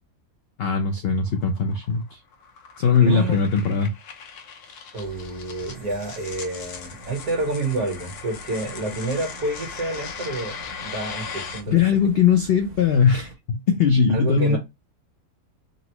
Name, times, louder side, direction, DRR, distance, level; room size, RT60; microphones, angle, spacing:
voice 1, 0.6-2.2 2.8-3.9 11.7-14.6, left 6 dB, 75° left, 0.5 m, -20 dB
sound 1, 0.9-11.6, left 6 dB, 90° left, 1.3 m, -39 dB
voice 2, 3.0-3.4 4.9-11.8 14.1-14.6, right 2 dB, 70° right, 1.6 m, -29 dB
sound 2, 5.0-13.4, right 1 dB, 85° right, 1.6 m, -45 dB
3.9 x 2.0 x 2.8 m
omnidirectional pair, 1.6 m